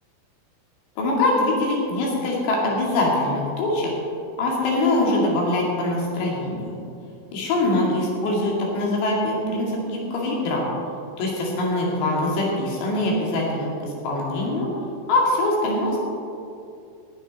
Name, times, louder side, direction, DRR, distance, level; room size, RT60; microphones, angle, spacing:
voice 1, 1.0-3.9 4.4-6.7 7.3-10.7 11.2-14.7 15.1-16.0, left 2 dB, 65° left, -2 dB, 4.2 m, -23 dB
17.0 x 9.5 x 4.2 m, 2.5 s
omnidirectional pair, 5.9 m